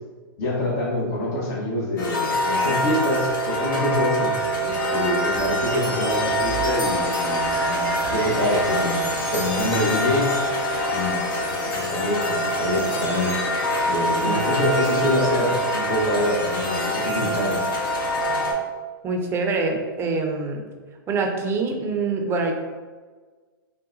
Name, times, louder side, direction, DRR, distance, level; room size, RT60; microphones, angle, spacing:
voice 1, 0.4-4.3 4.6-10.3 10.9-13.3 13.9-17.7, left 1 dB, 45° left, -4 dB, 1.1 m, -26 dB
sound 1, 2.0-18.5, equal, 65° left, 1.3 m, -24 dB
voice 2, 19.0-20.6 21.1-22.5, right 3 dB, 20° right, 2 dB, 0.6 m, -25 dB
3.8 x 2.2 x 3.9 m, 1.4 s
hypercardioid pair, 130°, 12 cm